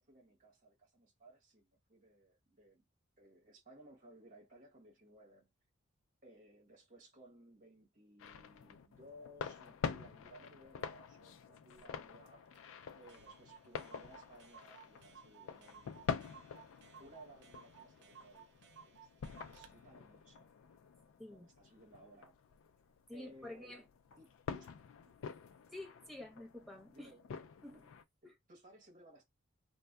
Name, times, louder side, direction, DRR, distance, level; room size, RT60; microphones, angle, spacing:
voice 1, 0.0-2.8 3.2-5.5 6.2-12.7 12.9-16.2 17.0-18.5 18.9-19.1 19.4-20.5 21.3-22.4 23.1-23.9 24.2-24.8 26.9-27.3 28.2-29.2, right 1 dB, 40° right, 1.0 m, -60 dB
sound 1, 8.2-28.0, left 6 dB, 70° left, 0.3 m, -47 dB
Clock, 12.5-12.6 12.8-12.9 13.1-19.7, right 7 dB, 55° right, 0.4 m, -59 dB
voice 2, 23.1-23.8 25.7-27.1 27.6-27.9 28.2-28.3, left 1 dB, ahead, 0.6 m, -49 dB
2.6 x 2.1 x 2.2 m
head